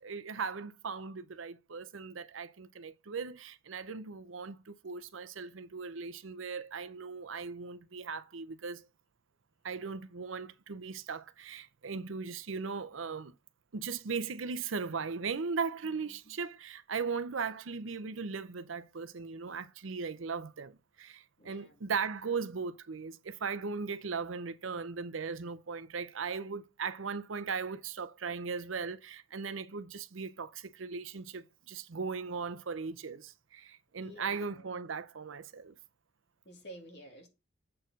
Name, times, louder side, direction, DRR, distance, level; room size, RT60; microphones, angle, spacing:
voice 1, 0.0-8.8 9.6-13.3 13.7-35.7, right 5 dB, 85° right, 0.7 m, -38 dB
voice 2, 15.8-16.4 21.4-21.8 34.0-34.7 36.4-37.3, equal, 55° left, 2.3 m, -52 dB
7.6 x 4.6 x 5.3 m
head